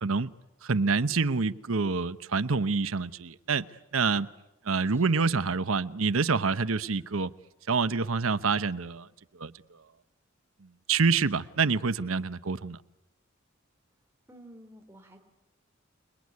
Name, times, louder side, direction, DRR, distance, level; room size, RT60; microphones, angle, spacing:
voice 1, 0.6-3.6 3.9-4.3 4.6-7.3 7.7-9.1 9.4-9.5 10.6-12.8, right 4 dB, 90° right, 14 dB, 0.9 m, -27 dB
voice 2, 4.9-5.4 14.3-15.2, right 1 dB, 15° right, 2 dB, 3.5 m, -52 dB
28.5 x 21.5 x 9.6 m, 0.96 s
head